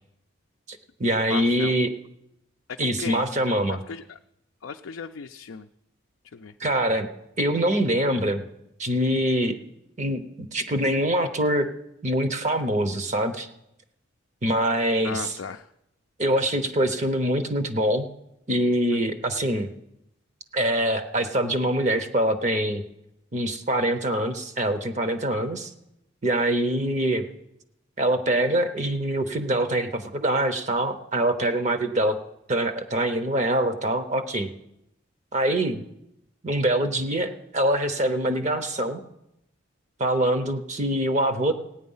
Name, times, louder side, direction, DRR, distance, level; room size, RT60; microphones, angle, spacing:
voice 1, 0.7-1.9 2.8-3.8 6.6-7.1 7.4-8.4 8.8-9.6 10.0-11.7 12.0-13.5 14.4-15.4 16.2-18.1 18.5-19.7 20.5-22.8 23.3-25.7 26.2-27.2 28.0-32.2 32.5-34.5 35.3-35.8 36.4-39.0 40.0-41.5, right 1 dB, 35° right, 9 dB, 0.8 m, -24 dB
voice 2, 1.3-1.8 2.7-3.2 3.7-4.2 4.6-5.7 6.3-6.5 15.0-15.7, left 5 dB, 65° left, 5 dB, 0.4 m, -36 dB
16.5 x 9.4 x 5.5 m, 0.83 s
head